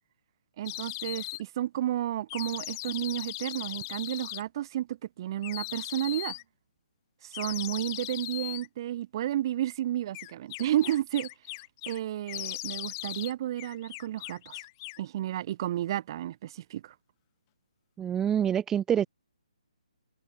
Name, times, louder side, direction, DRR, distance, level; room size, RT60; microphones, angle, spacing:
voice 1, 0.6-6.4 7.2-11.3 11.9-14.6 15.0-16.9, right 12 dB, 35° right, 6.2 m, -32 dB
sound 1, 0.7-1.4 2.3-4.4 5.4-6.4 7.3-8.7 10.1-12.0 12.3-13.3 13.6-15.1, left 24 dB, 25° left, 7.6 m, -38 dB
voice 2, 18.0-19.1, right 9 dB, 10° right, 2.7 m, -26 dB
figure-of-eight pair, 140°, 4 cm